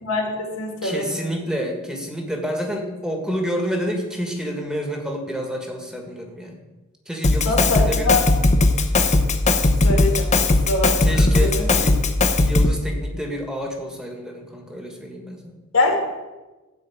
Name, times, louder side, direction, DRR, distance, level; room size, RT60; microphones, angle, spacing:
voice 1, 0.0-1.2 7.5-8.2 9.8-11.1 11.4-11.7 15.7-16.0, left 2 dB, 85° left, 0 dB, 2.6 m, -23 dB
voice 2, 0.8-6.6 7.0-8.1 10.9-12.0 12.4-15.6, equal, 5° right, 1 dB, 1.6 m, -29 dB
Drum kit, 7.2-12.8, left 2 dB, 35° left, 0.8 m, -18 dB
13.0 x 4.5 x 8.4 m, 1.2 s
head